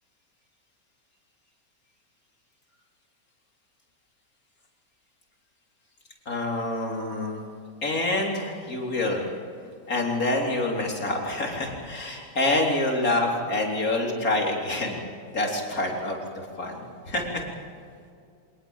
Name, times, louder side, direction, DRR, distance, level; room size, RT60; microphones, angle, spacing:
voice 1, 6.3-7.4 7.8-9.2 9.9-15.0 15.3-17.4, left 2 dB, 50° left, 0 dB, 4.3 m, -27 dB
25.5 x 20.0 x 7.4 m, 2.4 s
omnidirectional pair, 2.0 m